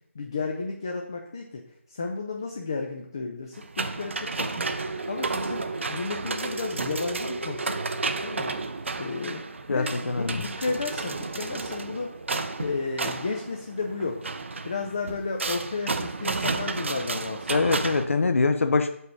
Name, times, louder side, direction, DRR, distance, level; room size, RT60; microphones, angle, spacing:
voice 1, 0.1-7.8 8.2-8.6 9.0-12.1 12.6-14.2 14.6-17.8, left 4 dB, 15° left, 1 dB, 0.3 m, -33 dB
sound 1, 3.6-18.1, right 3 dB, 60° right, 0.6 m, -32 dB
sound 2, 6.8-7.2 8.8-8.9 10.1-10.3 10.8-12.1 12.4-13.0 14.3-14.7 14.9-15.2, right 2 dB, 85° right, 1.2 m, -40 dB
voice 2, 9.7-10.4 17.5-18.9, left 4 dB, 70° left, 8 dB, 0.6 m, -24 dB
5.3 x 4.0 x 5.9 m, 0.71 s
figure-of-eight pair, 175°, 7 cm